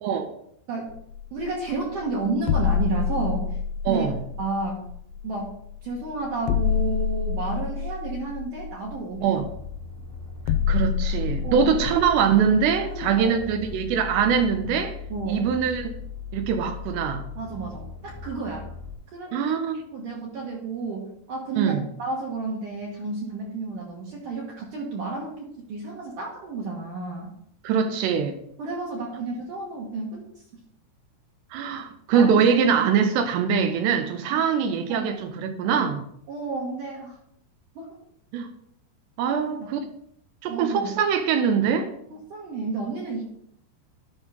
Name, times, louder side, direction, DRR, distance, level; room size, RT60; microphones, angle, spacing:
voice 1, 0.0-0.3 3.9-4.2 9.2-9.5 10.7-15.0 15.3-15.9 16.3-17.3 19.3-19.8 21.6-21.9 27.6-28.4 31.5-36.1 38.3-38.5 39.2-39.8 40.4-41.9, right 7 dB, 80° right, 2.8 m, -23 dB
sound 1, 0.9-12.1, left 8 dB, 90° left, 3.0 m, -28 dB
voice 2, 1.3-3.6 3.9-4.1 4.4-4.8 5.2-5.5 5.8-9.4 11.4-11.7 12.9-13.4 15.1-15.4 17.4-18.7 19.1-19.6 19.9-27.3 28.6-30.2 32.1-32.4 34.3-34.5 34.9-35.1 36.3-37.2 37.8-38.0 39.3-39.7 40.5-41.0 42.1-43.2, right 3 dB, 60° right, 2.5 m, -31 dB
sound 2, 9.4-18.9, left 6 dB, 15° left, 1.0 m, -38 dB
12.0 x 5.5 x 3.6 m
omnidirectional pair, 5.0 m